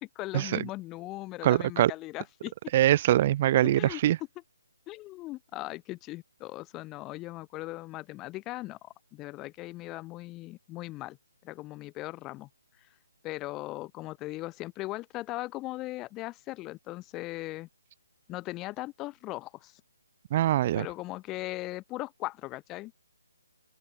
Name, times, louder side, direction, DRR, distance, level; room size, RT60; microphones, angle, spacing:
voice 1, 0.2-2.5 3.6-4.0 4.9-11.2 11.4-12.5 13.2-17.7 18.3-19.7 20.7-23.0, left 19 dB, 15° left, 2.1 m, -39 dB
voice 2, 1.4-1.9 2.7-4.2 20.3-20.9, right 13 dB, 30° right, 0.3 m, -23 dB
open air
hypercardioid pair, 160°, 0 cm